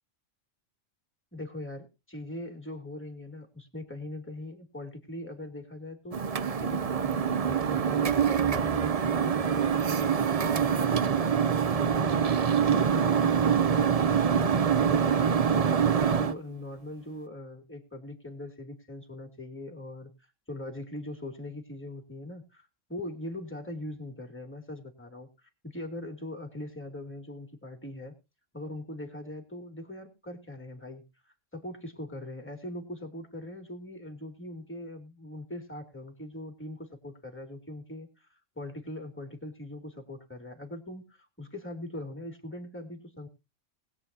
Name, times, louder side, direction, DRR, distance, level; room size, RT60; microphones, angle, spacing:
voice 1, 1.3-6.3 6.6-12.1 12.7-15.6 16.1-28.1 28.5-43.3, left 1 dB, 10° left, 4 dB, 2.8 m, -41 dB
sound 1, 6.1-16.3, right 7 dB, 40° right, 0.6 m, -25 dB
21.0 x 8.7 x 2.8 m, 0.28 s
omnidirectional pair, 1.3 m